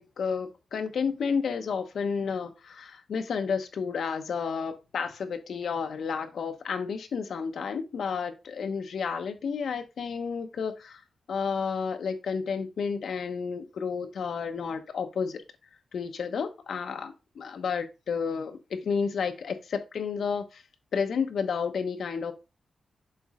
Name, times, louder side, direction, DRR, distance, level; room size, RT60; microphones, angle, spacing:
voice 1, 0.0-11.0 11.3-15.4 15.9-20.6 20.9-22.3, left 6 dB, 65° left, 0.9 m, -31 dB
6.9 x 4.2 x 3.6 m
wide cardioid pair, 180°, 0 cm